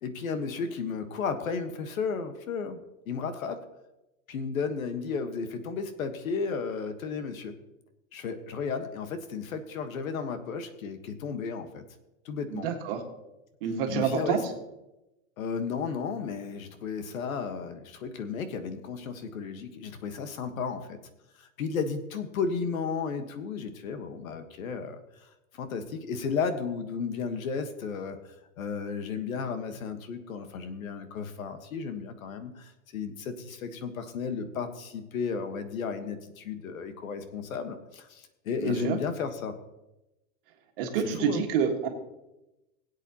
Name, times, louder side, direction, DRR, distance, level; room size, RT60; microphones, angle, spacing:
voice 1, 0.0-3.6 4.3-7.6 8.1-11.8 12.2-12.7 13.9-14.4 15.4-21.0 21.4-25.0 25.5-28.2 28.6-39.5 41.0-41.5, left 5 dB, 75° left, 8 dB, 1.5 m, -33 dB
voice 2, 12.5-13.0 13.6-14.4 38.6-39.0 40.8-41.9, right 7 dB, 40° right, 2 dB, 1.8 m, -28 dB
20.5 x 8.2 x 3.0 m, 0.97 s
supercardioid pair, 170°, 41 cm